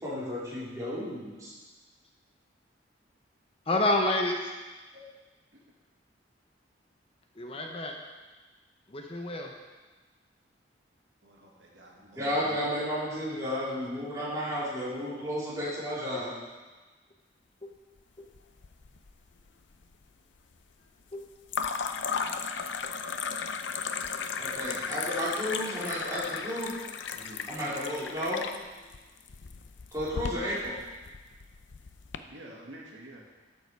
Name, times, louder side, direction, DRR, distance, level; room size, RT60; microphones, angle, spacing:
voice 1, 0.0-1.5 12.2-16.3 24.4-26.8 27.5-28.4 29.9-30.8, equal, 20° right, -9 dB, 3.6 m, -32 dB
voice 2, 3.7-4.5 7.4-7.9 8.9-9.5 17.6-17.7 18.2-18.3 21.1-21.2, left 2 dB, 30° left, 2 dB, 0.9 m, -28 dB
voice 3, 11.2-12.6 27.1-27.4 32.3-33.2, right 1 dB, 80° right, -2 dB, 1.9 m, -48 dB
sound 1, 18.3-19.1 19.4-20.0 21.5-32.2, left 6 dB, 75° left, 0.6 m, -36 dB
12.0 x 7.0 x 4.7 m, 1.3 s
head